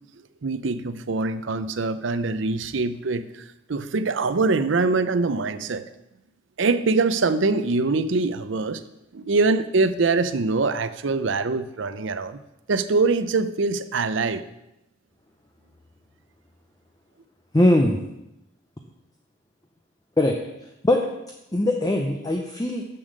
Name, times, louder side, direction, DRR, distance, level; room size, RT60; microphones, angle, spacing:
voice 1, 0.4-5.8 6.6-8.8 9.1-12.4 12.7-14.4, right 3 dB, 65° right, 12 dB, 0.6 m, -23 dB
voice 2, 17.5-18.0 20.2-20.4 20.8-21.1 21.5-22.9, left 1 dB, 20° left, 2 dB, 0.6 m, -20 dB
7.2 x 6.9 x 6.5 m, 0.89 s
head